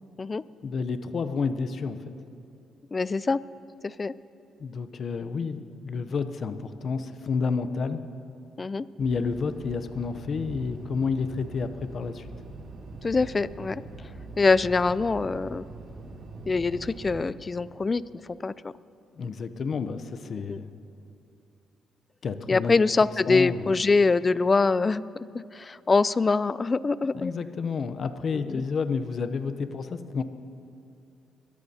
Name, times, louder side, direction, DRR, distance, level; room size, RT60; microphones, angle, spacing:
voice 1, 0.6-2.0 4.6-8.0 9.0-12.3 19.2-20.7 22.2-22.8 23.3-23.7 27.1-30.2, left 5 dB, 50° left, 10 dB, 0.7 m, -30 dB
voice 2, 2.9-3.4 3.8-4.1 8.6-8.9 13.0-13.8 14.4-15.6 16.5-18.0 18.4-18.7 20.5-20.6 22.5-25.0 25.5-27.3 28.3-28.6, left 4 dB, 30° left, 18 dB, 0.3 m, -24 dB
sound 1, 9.0-17.2, right 2 dB, 60° right, 1.8 m, -42 dB
23.0 x 13.5 x 2.8 m, 2.6 s
cardioid pair, 90°, 0 cm